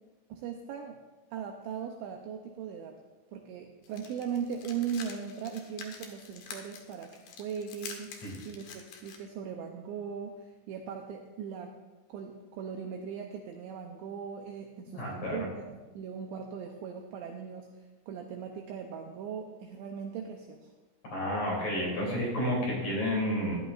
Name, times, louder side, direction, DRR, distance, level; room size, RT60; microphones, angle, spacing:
voice 1, 0.3-1.0 1.3-3.0 3.3-11.7 12.1-17.7 18.1-20.7, right 7 dB, 80° right, 2 dB, 2.7 m, -39 dB
sound 1, 3.8-9.2, left 6 dB, 80° left, 2.0 m, -47 dB
voice 2, 14.9-15.5 21.0-23.6, equal, 40° left, -4 dB, 3.8 m, -31 dB
17.0 x 11.0 x 2.5 m, 1.2 s
omnidirectional pair, 5.9 m